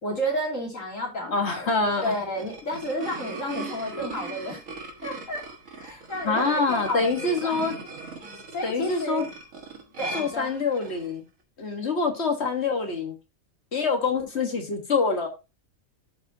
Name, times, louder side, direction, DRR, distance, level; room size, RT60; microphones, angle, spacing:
voice 1, 0.0-1.7 2.0-4.6 5.0-5.4 5.8-7.7 8.5-9.3 9.7-10.5, equal, 70° left, -1 dB, 3.2 m, -31 dB
voice 2, 1.3-2.2 6.2-7.7 8.6-9.2 10.1-11.2 11.6-13.1 13.7-15.3, left 4 dB, 50° left, 4 dB, 1.7 m, -25 dB
sound 1, 1.8-11.1, right 3 dB, 75° right, 1.9 m, -39 dB
12.0 x 5.1 x 2.7 m, 0.27 s
omnidirectional pair, 1.4 m